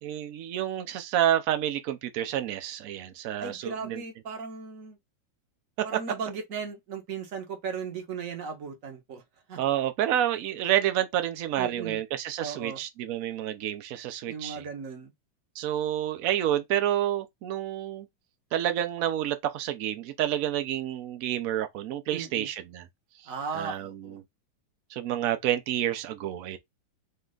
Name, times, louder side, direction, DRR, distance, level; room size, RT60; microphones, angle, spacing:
voice 1, 0.0-4.0 5.8-5.9 9.6-14.6 15.6-18.1 18.5-22.9 23.5-24.2 24.9-26.6, right 11 dB, 85° right, 0.7 m, -29 dB
voice 2, 3.4-5.0 5.8-9.2 9.5-9.6 11.6-12.0 12.4-12.8 14.3-15.1 22.1-22.5 23.3-24.2, right 5 dB, 45° right, 1.3 m, -36 dB
5.3 x 2.4 x 3.8 m
omnidirectional pair, 2.2 m